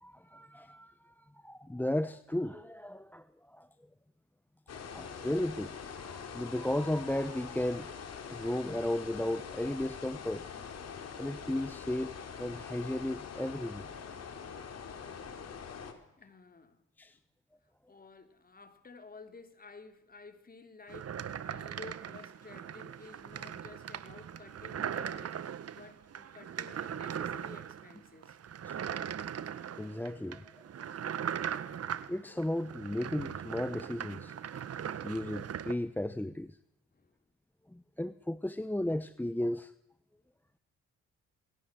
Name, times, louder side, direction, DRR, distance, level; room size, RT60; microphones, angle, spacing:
voice 1, 0.0-3.7 4.7-10.5 11.2-13.9 17.0-17.2 28.6-28.8 29.7-30.4 30.8-30.9 32.1-34.7 35.0-36.6 37.7-39.7, left 1 dB, 5° left, 1.0 m, -35 dB
sound 1, 4.7-15.9, left 6 dB, 55° left, 4.4 m, -44 dB
voice 2, 16.2-17.2 17.9-28.4 36.9-37.2, left 3 dB, 30° left, 3.9 m, -53 dB
sound 2, 20.9-35.7, right 8 dB, 55° right, 1.6 m, -39 dB
28.5 x 20.0 x 7.9 m
cardioid pair, 90°, 30 cm